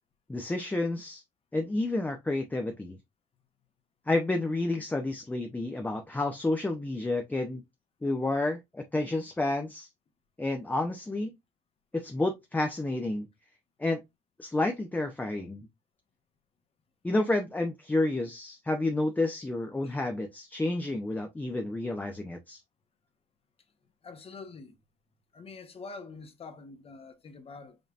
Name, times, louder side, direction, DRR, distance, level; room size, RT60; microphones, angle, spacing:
voice 1, 0.3-1.2 1.5-3.0 4.1-7.6 8.0-9.9 10.4-11.3 11.9-13.3 13.8-14.0 14.4-15.6 17.0-22.6, left 2 dB, 10° left, 0.5 m, -30 dB
voice 2, 24.0-24.8 25.3-27.8, left 4 dB, 35° left, 0.9 m, -45 dB
5.2 x 2.7 x 2.4 m
cardioid pair, 110°, 17 cm